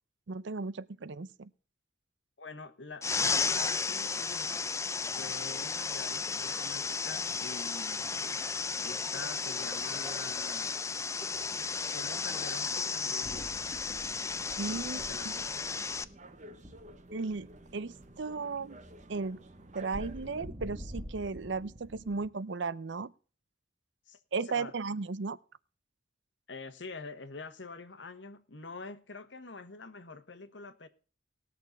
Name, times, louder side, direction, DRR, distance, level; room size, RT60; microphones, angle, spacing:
voice 1, 0.3-1.5 14.6-15.0 15.2-15.3 17.1-18.8 19.1-19.4 19.7-23.1 24.3-25.4, right 4 dB, 70° right, 0.6 m, -35 dB
voice 2, 2.4-4.5 5.0-8.4 8.8-10.7 11.9-13.6 14.7-15.7 24.1-24.2 24.4-24.7 26.5-30.9, left 3 dB, 70° left, 1.4 m, -46 dB
Waterfall sound natural, 3.0-16.0, left 5 dB, 15° left, 0.4 m, -34 dB
sound 1, 13.2-22.3, equal, 25° right, 1.6 m, -48 dB
sound 2, 14.5-20.5, right 1 dB, 40° right, 1.1 m, -52 dB
20.0 x 6.7 x 3.9 m
head